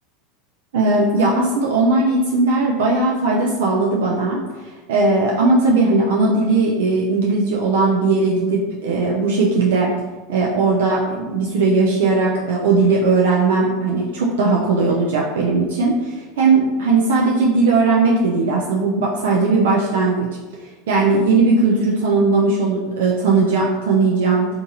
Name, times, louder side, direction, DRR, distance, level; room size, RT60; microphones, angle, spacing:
voice 1, 0.7-9.9 10.3-20.2 20.9-24.5, right 3 dB, 75° right, -3 dB, 0.4 m, -18 dB
2.6 x 2.5 x 2.6 m, 1.3 s
hypercardioid pair, 95°, 0 cm